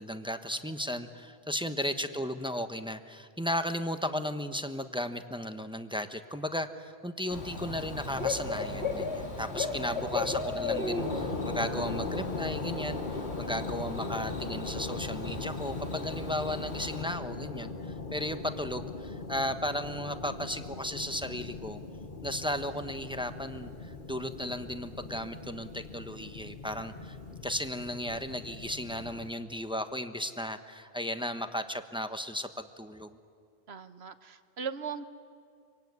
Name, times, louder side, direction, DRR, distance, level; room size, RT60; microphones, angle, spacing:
voice 1, 0.0-21.8 22.2-27.2 27.4-33.2, equal, 5° right, 8 dB, 1.0 m, -35 dB
Bird / Cricket, 7.3-17.0, left 3 dB, 85° left, 2.6 m, -36 dB
voice 2, 9.7-10.1 33.7-35.1, right 6 dB, 75° right, 11 dB, 1.4 m, -40 dB
sound 1, 11.0-29.3, left 3 dB, 50° left, 1.5 m, -39 dB
25.5 x 24.5 x 9.5 m, 2.2 s
omnidirectional pair, 1.1 m